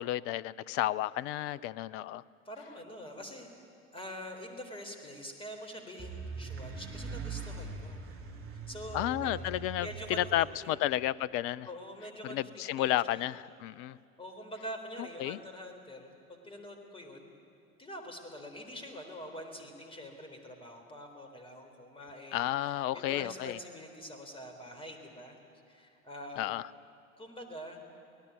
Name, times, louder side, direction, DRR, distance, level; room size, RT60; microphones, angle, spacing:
voice 1, 0.0-2.2 8.9-11.7 12.2-14.0 15.2-15.4 22.3-23.6 26.4-26.6, left 14 dB, 35° left, 18 dB, 0.5 m, -32 dB
voice 2, 2.5-3.5 3.9-8.0 8.5-9.3 9.8-10.3 10.6-10.8 11.7-12.5 12.8-13.3 14.2-17.3 17.8-25.4 25.7-26.6 27.2-27.8, equal, 15° left, 4 dB, 3.8 m, -45 dB
sound 1, 6.0-10.6, right 4 dB, 30° right, 3.1 m, -42 dB
25.5 x 18.0 x 8.6 m, 2.5 s
figure-of-eight pair, 80°, 42 cm